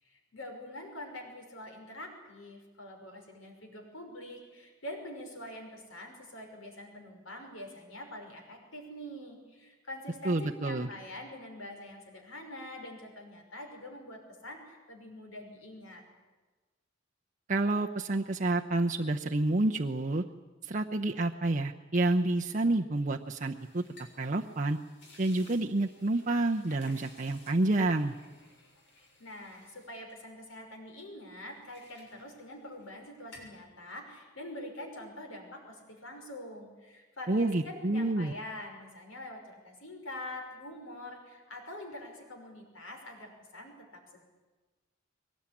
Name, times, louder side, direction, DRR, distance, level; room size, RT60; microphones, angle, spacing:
voice 1, 0.0-16.0 28.9-44.2, left 1 dB, 85° left, 3 dB, 5.7 m, -45 dB
voice 2, 10.2-10.9 17.5-20.2 20.6-23.8 24.2-24.8 25.2-28.1 37.3-38.3, right 2 dB, 40° right, 2 dB, 0.8 m, -29 dB
sound 1, 23.2-30.9 31.3-33.0 33.2-33.6, left 2 dB, 60° left, 7.0 m, -58 dB
22.5 x 19.5 x 9.9 m, 1.2 s
head